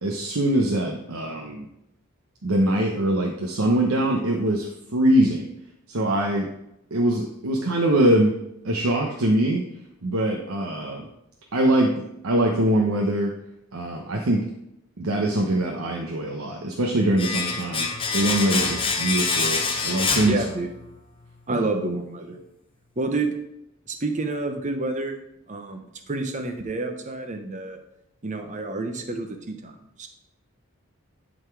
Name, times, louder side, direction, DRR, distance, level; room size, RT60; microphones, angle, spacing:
voice 1, 0.0-1.7 2.4-5.5 5.9-6.5 6.9-8.3 8.6-9.6 10.0-11.1 11.5-13.3 13.7-14.4 15.0-17.9 18.1-20.5 21.5-21.6, right 1 dB, 85° right, 1 dB, 0.9 m, -23 dB
Domestic sounds home sounds, 17.2-21.0 21.3-21.4, left 4 dB, 25° left, 0.8 m, -26 dB
voice 2, 20.3-20.7 21.5-22.4 23.0-23.3 23.9-25.2 25.5-27.8 28.2-30.1, right 2 dB, 35° right, 6 dB, 0.9 m, -29 dB
11.0 x 4.1 x 4.7 m, 0.83 s
head